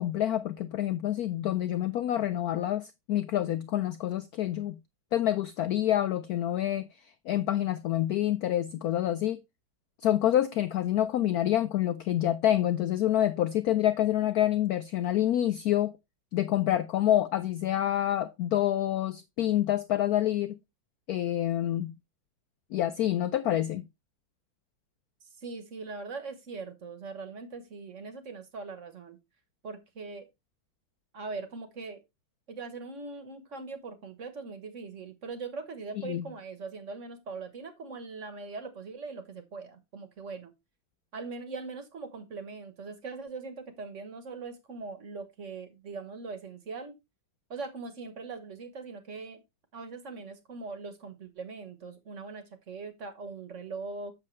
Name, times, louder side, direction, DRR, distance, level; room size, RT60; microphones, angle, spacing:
voice 1, 0.0-4.8 5.1-6.9 7.3-9.4 10.0-15.9 16.3-20.5 21.1-21.9 22.7-23.8 36.0-36.3, left 12 dB, 85° left, 0.8 m, -27 dB
voice 2, 25.2-29.2 29.6-30.3 31.1-32.0 32.5-40.5 41.1-46.9 47.5-49.4 49.7-54.1, right 4 dB, 45° right, 1.3 m, -41 dB
7.6 x 6.7 x 3.2 m
omnidirectional pair, 2.2 m